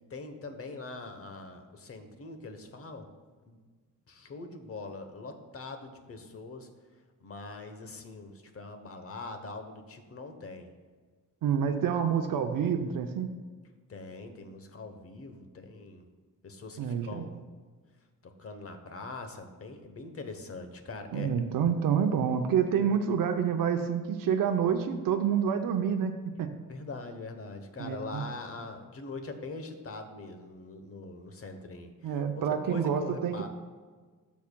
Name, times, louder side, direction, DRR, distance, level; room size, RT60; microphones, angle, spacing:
voice 1, 0.0-3.1 3.5-3.6 4.1-10.7 13.9-16.1 16.4-17.4 18.2-21.3 26.7-33.5, left 3 dB, 40° left, 7 dB, 1.0 m, -43 dB
voice 2, 11.4-13.3 16.8-17.2 21.1-26.1 26.4-26.5 27.8-28.2 32.0-33.5, right 7 dB, 75° right, 5 dB, 0.7 m, -28 dB
13.0 x 7.1 x 2.3 m, 1.5 s
wide cardioid pair, 135°, 34 cm